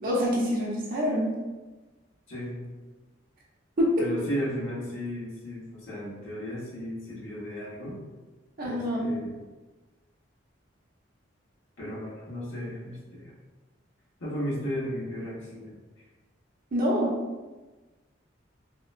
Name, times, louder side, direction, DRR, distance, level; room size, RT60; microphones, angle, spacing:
voice 1, 0.0-1.3 3.8-3.9 8.6-9.1 16.7-17.1, equal, 50° right, -4 dB, 0.6 m, -26 dB
voice 2, 2.3-2.6 4.0-8.0 8.6-9.3 11.8-13.3 14.2-15.8, equal, 90° left, -8 dB, 1.1 m, -35 dB
2.8 x 2.1 x 2.5 m, 1.2 s
head